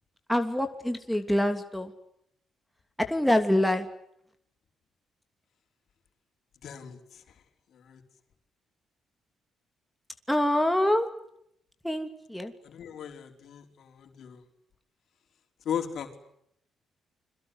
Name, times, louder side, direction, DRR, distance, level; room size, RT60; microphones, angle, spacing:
voice 1, 0.3-1.9 3.1-3.9 10.3-11.1 11.8-12.5, left 1 dB, ahead, 5 dB, 2.9 m, -25 dB
voice 2, 6.6-7.2 7.7-8.0 12.6-14.4 15.6-16.2, left 8 dB, 65° left, 5 dB, 4.7 m, -37 dB
29.5 x 22.5 x 8.2 m, 0.74 s
cardioid pair, 90°, 0 cm